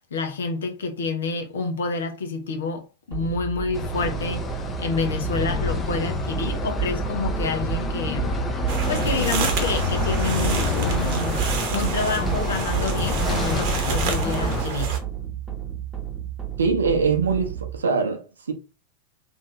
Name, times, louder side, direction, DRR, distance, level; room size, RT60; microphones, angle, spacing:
voice 1, 0.0-4.4 4.8-8.3 8.9-11.4 11.7-15.0, left 4 dB, 65° left, 0.8 m, -28 dB
sound 1, 3.1-17.8, right 9 dB, 15° right, 1.0 m, -31 dB
sound 2, 3.7-14.6, left 4 dB, 20° left, 0.7 m, -28 dB
sound 3, 8.7-15.0, right 6 dB, 45° right, 0.9 m, -28 dB
voice 2, 16.6-18.5, right 5 dB, 70° right, 0.8 m, -23 dB
3.5 x 2.6 x 3.1 m
figure-of-eight pair, 90°, 0 cm